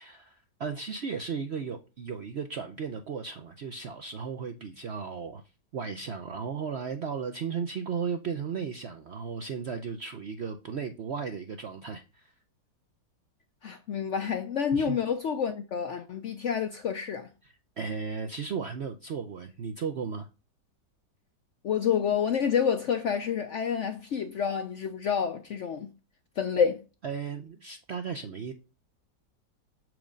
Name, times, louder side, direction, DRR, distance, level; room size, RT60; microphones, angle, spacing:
voice 1, 0.0-5.4 5.7-12.3 14.7-15.0 17.4-20.3 27.0-28.5, right 6 dB, 65° right, 0.6 m, -35 dB
voice 2, 13.6-17.3 21.6-25.9 26.4-26.8, left 7 dB, 65° left, 0.7 m, -28 dB
7.2 x 4.7 x 5.1 m
omnidirectional pair, 1.9 m